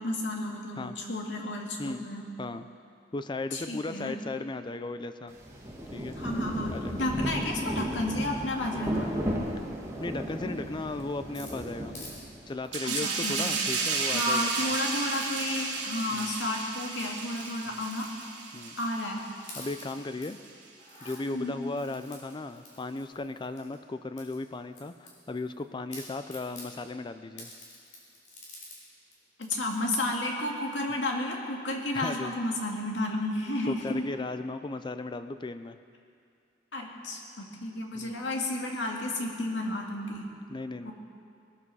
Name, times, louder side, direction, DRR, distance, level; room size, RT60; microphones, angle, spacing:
voice 1, 0.0-2.3 3.5-4.2 6.2-9.2 12.8-13.7 14.1-18.1 18.8-19.3 21.3-21.6 29.4-34.1 36.7-40.3 40.8-40.9, left 1 dB, 90° left, 0 dB, 2.2 m, -32 dB
voice 2, 3.1-5.3 5.9-6.2 6.7-6.9 10.0-11.9 12.5-14.8 16.1-16.4 17.7-17.8 18.5-18.7 19.6-20.4 21.0-27.5 31.9-32.3 33.6-35.8 37.9-38.1 40.5-40.9, left 2 dB, 25° left, 10 dB, 0.4 m, -36 dB
Rain, 5.3-12.5, equal, 15° right, 1.8 m, -34 dB
sound 1, 11.3-12.2 12.5-12.7 13.2-13.9 14.1-14.6 15.1-15.4 16.1-16.5 16.9-19.0 19.4-20.3 20.7-21.2 21.8-23.8 24.2-25.6 25.9-26.7 27.4-28.8 29.1-29.2 29.4-30.0, left 2 dB, 45° left, 4.3 m, -48 dB
sound 2, 12.7-19.9 20.3-20.5, right 4 dB, 85° right, 2.0 m, -33 dB
20.5 x 13.5 x 4.8 m, 2.4 s
head